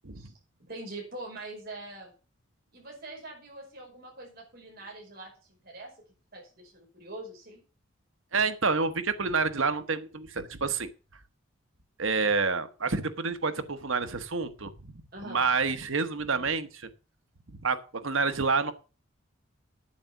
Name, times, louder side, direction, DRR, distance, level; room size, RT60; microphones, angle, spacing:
voice 1, 0.6-2.1 2.7-5.9 6.3-7.6 15.1-15.4, right 2 dB, 45° right, -2 dB, 5.2 m, -43 dB
voice 2, 8.3-10.9 12.0-14.9 15.2-16.9 17.6-18.7, right 4 dB, 75° right, 11 dB, 1.3 m, -28 dB
8.7 x 7.9 x 7.1 m, 0.34 s
head